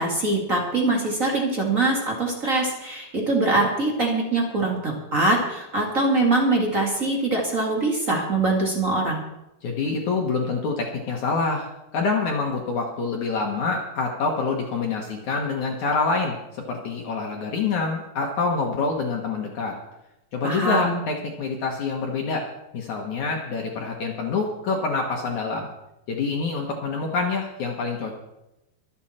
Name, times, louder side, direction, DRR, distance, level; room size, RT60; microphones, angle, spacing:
voice 1, 0.0-9.2 20.4-21.0, right 2 dB, 45° right, -1 dB, 1.0 m, -23 dB
voice 2, 9.6-16.4 16.7-19.8 20.3-22.4 22.7-25.7 26.1-28.2, left 4 dB, 60° left, 0 dB, 2.1 m, -26 dB
24.0 x 8.8 x 4.3 m, 0.92 s
omnidirectional pair, 5.1 m